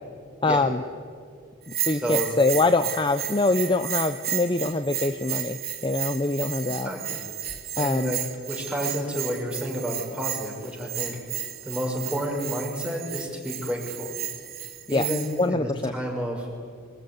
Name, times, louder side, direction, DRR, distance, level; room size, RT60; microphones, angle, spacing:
voice 1, 0.4-0.8 1.8-6.9 7.8-8.1 14.9-15.1 15.4-16.0, left 2 dB, 25° left, 8 dB, 0.7 m, -24 dB
Bell, 1.7-15.4, right 11 dB, 45° right, 2.6 m, -33 dB
voice 2, 1.9-2.3 6.7-7.2 7.8-8.2 8.5-11.2 11.6-14.1 14.9-16.5, equal, 5° right, 0 dB, 5.7 m, -30 dB
25.5 x 21.0 x 9.8 m, 2.1 s
head